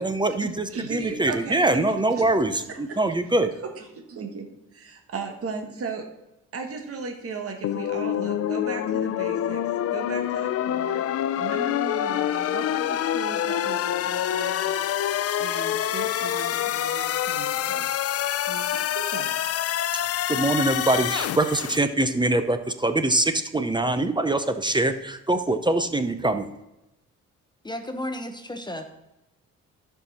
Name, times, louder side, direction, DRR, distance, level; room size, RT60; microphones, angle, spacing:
voice 1, 0.0-3.5 20.3-26.5, right 2 dB, 15° right, 9 dB, 0.7 m, -23 dB
voice 2, 0.7-2.2 2.6-3.3 3.6-4.4 4.7-6.1 6.5-9.6 9.9-11.0 11.4-17.9 18.4-19.4, right 4 dB, 50° right, 3 dB, 1.6 m, -37 dB
sound 1, 7.6-21.8, left 11 dB, 55° left, 0.5 m, -26 dB
voice 3, 27.6-28.9, left 1 dB, 15° left, 6 dB, 0.9 m, -33 dB
13.5 x 5.6 x 4.3 m, 0.91 s
cardioid pair, 90°, 30 cm